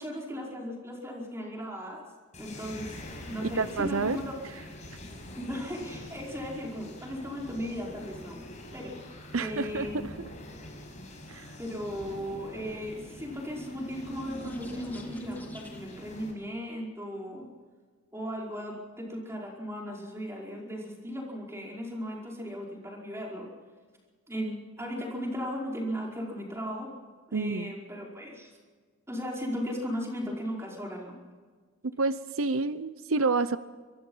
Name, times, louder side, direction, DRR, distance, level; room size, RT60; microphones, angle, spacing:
voice 1, 0.0-2.0 2.4-3.0 3.2-4.3 5.4-8.4 8.7-9.0 9.3-10.1 11.6-17.4 18.1-23.5 24.3-26.9 27.3-28.5 29.1-31.1, equal, 15° right, -2 dB, 5.0 m, -36 dB
sound 1, 2.3-16.3, left 1 dB, 35° left, 6.2 m, -45 dB
voice 2, 3.4-4.2 9.3-10.3 11.3-11.5 27.3-27.7 32.0-33.6, right 3 dB, 90° right, 14 dB, 0.8 m, -29 dB
sound 2, 13.2-16.1, equal, 10° left, 2.7 m, -43 dB
25.0 x 22.5 x 5.7 m, 1.5 s
head